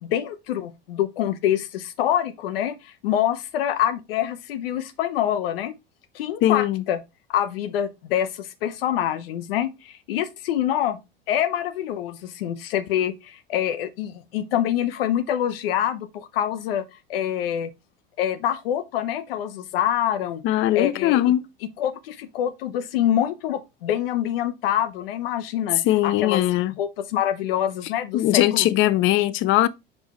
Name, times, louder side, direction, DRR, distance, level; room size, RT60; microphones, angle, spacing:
voice 1, 0.0-5.7 6.1-7.0 7.3-11.0 11.3-16.8 17.1-17.7 18.2-20.4 20.7-21.2 21.8-26.4 26.7-28.7, left 10 dB, 65° left, 0.9 m, -26 dB
voice 2, 6.4-6.8 20.4-21.5 25.8-26.7 28.1-29.7, left 14 dB, 40° left, 0.6 m, -20 dB
5.4 x 4.4 x 4.3 m
figure-of-eight pair, 75°, 31 cm